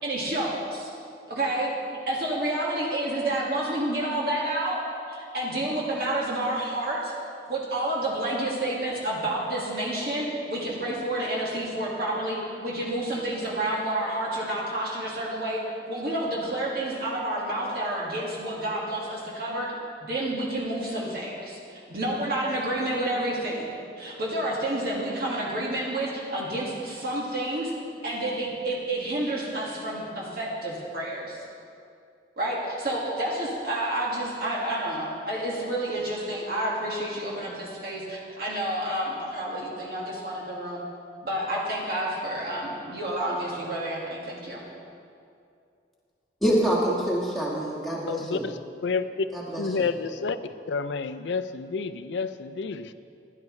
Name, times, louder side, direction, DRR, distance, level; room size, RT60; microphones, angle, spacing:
voice 1, 0.0-0.9 1.3-4.8 5.1-7.1 7.5-15.6 15.9-19.7 20.0-27.7 28.0-31.4 32.4-40.8 41.2-44.6, right 1 dB, 55° right, -6 dB, 1.9 m, -29 dB
voice 2, 46.4-48.5 49.3-49.9, equal, ahead, -5 dB, 1.8 m, -26 dB
voice 3, 48.1-49.3 49.6-50.4 50.7-52.9, left 4 dB, 90° left, 12 dB, 0.5 m, -29 dB
15.5 x 11.0 x 3.2 m, 2.5 s
head